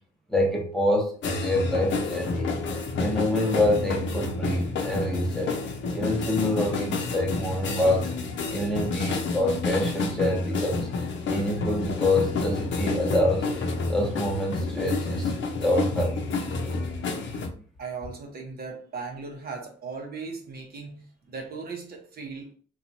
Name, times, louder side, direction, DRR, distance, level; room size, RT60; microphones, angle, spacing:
voice 1, 0.3-2.5 3.0-5.6 5.9-8.1 8.5-10.9 11.3-13.4 13.9-16.3, left 1 dB, ahead, -1 dB, 0.9 m, -26 dB
sound 1, 1.2-17.5, left 3 dB, 70° left, 0.6 m, -29 dB
voice 2, 17.8-22.5, right 4 dB, 50° right, 2 dB, 0.8 m, -38 dB
2.8 x 2.4 x 2.6 m, 0.42 s
cardioid pair, 90°, 20 cm